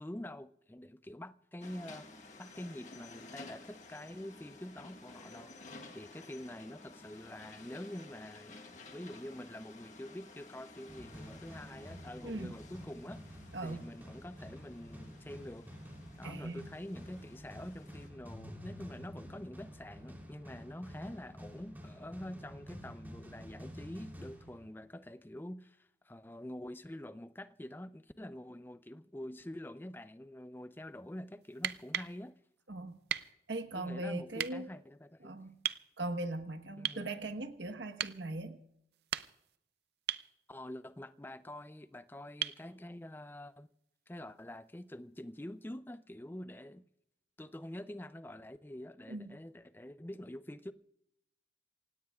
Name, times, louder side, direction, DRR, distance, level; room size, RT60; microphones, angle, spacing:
voice 1, 0.0-2.1 2.4-5.6 5.9-15.7 16.2-32.4 33.7-35.3 36.8-37.1 40.5-43.7 44.1-46.8 47.4-50.7, left 1 dB, 10° left, 0.4 m, -46 dB
sound 1, 1.6-18.1, left 3 dB, 40° left, 1.6 m, -54 dB
sound 2, 10.9-25.1, equal, 10° right, 3.3 m, -50 dB
voice 2, 12.2-12.5 13.5-13.9 16.2-16.7 32.7-33.0 33.5-34.7 35.2-35.5 36.0-38.6 49.1-49.3, right 2 dB, 85° right, 1.2 m, -39 dB
sound 3, 31.5-32.2 33.1-33.3 34.4-34.5 35.6-35.8 36.8-37.1 38.0-38.2 38.9-39.5 40.1-40.3 42.4-42.6 44.5-44.6, right 10 dB, 65° right, 0.5 m, -36 dB
27.5 x 17.0 x 2.4 m
head